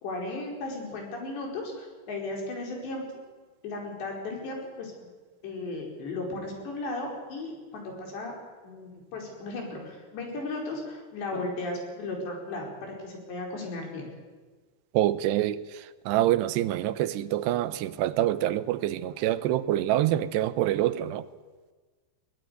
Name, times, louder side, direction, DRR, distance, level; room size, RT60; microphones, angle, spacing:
voice 1, 0.0-3.2 3.6-5.1 5.4-8.3 8.6-14.1, left 2 dB, 90° left, 6.9 m, -35 dB
voice 2, 14.9-21.3, right 13 dB, 85° right, 3.0 m, -26 dB
21.5 x 19.5 x 9.4 m
omnidirectional pair, 4.8 m